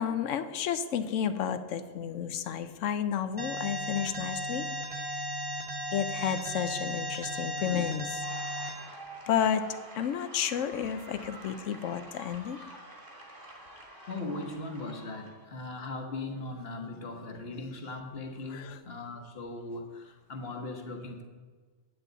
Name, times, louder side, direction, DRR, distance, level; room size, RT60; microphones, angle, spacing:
voice 1, 0.0-4.7 5.9-8.2 9.3-9.7 9.9-12.6 18.5-18.8, left 8 dB, 85° left, 11 dB, 1.0 m, -31 dB
Alarm, 3.4-8.7, equal, 5° right, 1.2 m, -35 dB
sound 1, 8.2-15.4, right 1 dB, 45° right, 2.1 m, -47 dB
voice 2, 14.0-21.2, left 2 dB, 55° left, 3 dB, 1.3 m, -39 dB
10.0 x 8.4 x 4.0 m, 1.5 s
omnidirectional pair, 1.3 m